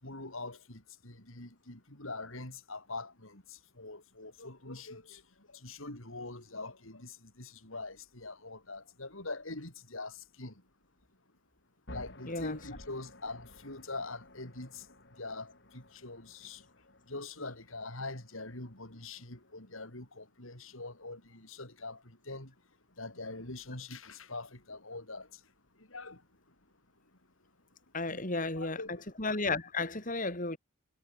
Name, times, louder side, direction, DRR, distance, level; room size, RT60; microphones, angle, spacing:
voice 1, 0.0-3.4 3.8-5.2 5.6-7.1 7.4-10.1 10.4-10.5 11.9-14.8 15.2-16.6 17.1-22.0 22.3-22.5 23.0-25.3 25.9-26.2 28.1-29.0, left 2 dB, 80° left, 6.4 m, -43 dB
sound 1, 11.9-19.9, left 1 dB, 55° left, 7.5 m, -54 dB
voice 2, 12.3-12.6 27.9-30.6, left 3 dB, 40° left, 4.5 m, -33 dB
head